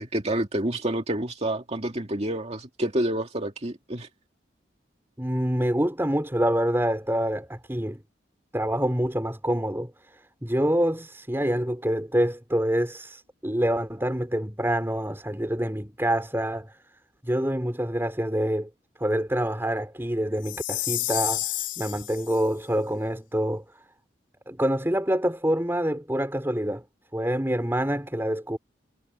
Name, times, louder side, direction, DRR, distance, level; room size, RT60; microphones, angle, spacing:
voice 1, 0.0-4.1, right 1 dB, 35° right, 2.1 m, -28 dB
voice 2, 5.2-8.0 8.5-16.8 17.2-18.7 19.0-23.6 24.5-26.9 27.1-28.6, equal, 15° right, 4.1 m, -26 dB
Chime, 20.4-22.4, left 15 dB, 90° left, 2.7 m, -30 dB
head